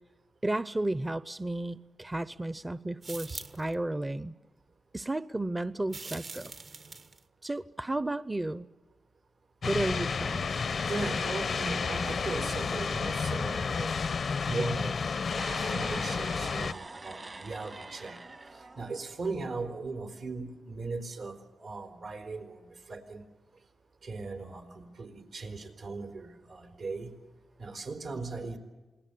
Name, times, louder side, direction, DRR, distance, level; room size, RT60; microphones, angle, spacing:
voice 1, 0.4-4.3 4.9-6.5 7.4-8.6 9.7-10.5, right 2 dB, 20° right, 13 dB, 0.7 m, -33 dB
sound 1, 3.0-3.7 5.9-7.2, right 3 dB, 60° right, 1.5 m, -43 dB
sound 2, 9.6-16.7, left 5 dB, 65° left, 0.7 m, -31 dB
voice 2, 10.9-13.9 14.5-18.2 18.6-23.2 24.0-27.1 27.6-28.6, right 3 dB, 80° right, 4 dB, 4.4 m, -38 dB
sound 3, 15.2-19.4, right 3 dB, 45° right, 1.7 m, -44 dB
28.0 x 20.0 x 8.5 m, 1.2 s
cardioid pair, 50°, 0 cm